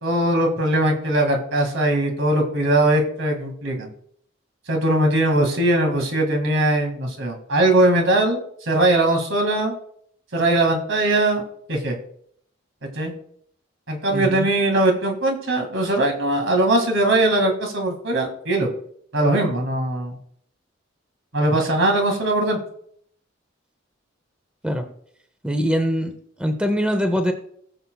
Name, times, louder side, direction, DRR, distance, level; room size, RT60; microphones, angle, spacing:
voice 1, 0.0-3.9 4.7-9.7 10.3-11.4 11.7-12.0 12.8-13.1 13.9-18.7 19.1-20.2 21.3-22.6, right 1 dB, 75° right, 3 dB, 2.3 m, -20 dB
voice 2, 14.1-14.5 24.6-24.9 25.4-26.1 26.4-27.3, equal, 5° right, 7 dB, 0.8 m, -22 dB
19.0 x 7.0 x 2.4 m, 0.65 s
head